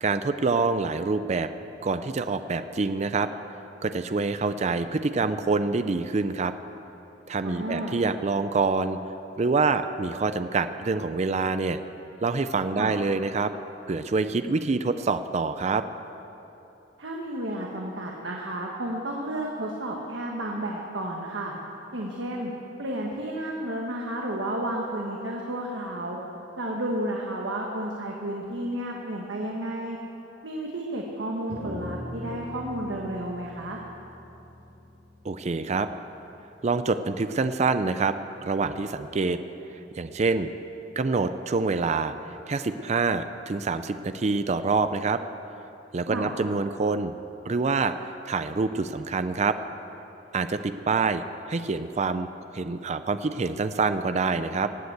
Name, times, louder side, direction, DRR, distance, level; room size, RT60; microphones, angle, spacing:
voice 1, 0.0-1.5 1.8-3.3 3.8-6.5 7.3-9.0 9.4-11.8 12.2-13.5 13.9-15.9 35.2-35.9 36.6-38.2 38.4-39.4 39.9-40.5 41.0-42.1 42.5-45.2 45.9-47.1 47.5-47.9 48.3-49.6 50.3-52.3 52.5-54.7, right 4 dB, 35° right, 10 dB, 0.4 m, -26 dB
voice 2, 7.4-8.0 12.8-12.9 17.0-21.5 21.9-22.5 22.8-26.2 26.6-30.0 30.4-33.8 46.1-46.3, right 1 dB, 80° right, -1 dB, 1.4 m, -32 dB
sound 1, 31.5-36.0, left 1 dB, 60° right, 3.4 m, -41 dB
18.5 x 8.0 x 8.0 m, 3.0 s
head